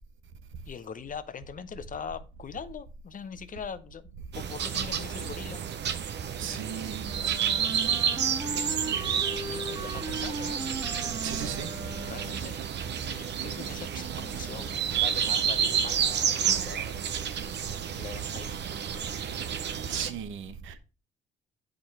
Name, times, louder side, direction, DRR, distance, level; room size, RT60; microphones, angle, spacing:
voice 1, 0.7-5.6 6.4-7.2 8.4-10.6 11.3-12.6 13.1-17.0 18.0-18.5, left 6 dB, 40° left, 0.8 m, -42 dB
sound 1, 4.3-20.1, right 8 dB, 60° right, 0.8 m, -30 dB
voice 2, 6.4-7.1 11.2-11.7 19.9-20.8, right 8 dB, 80° right, 1.0 m, -36 dB
Wind instrument woodwind instrument, 7.0-12.6, right 2 dB, 20° right, 1.7 m, -38 dB
8.7 x 5.0 x 4.5 m
cardioid pair, 90°, 20 cm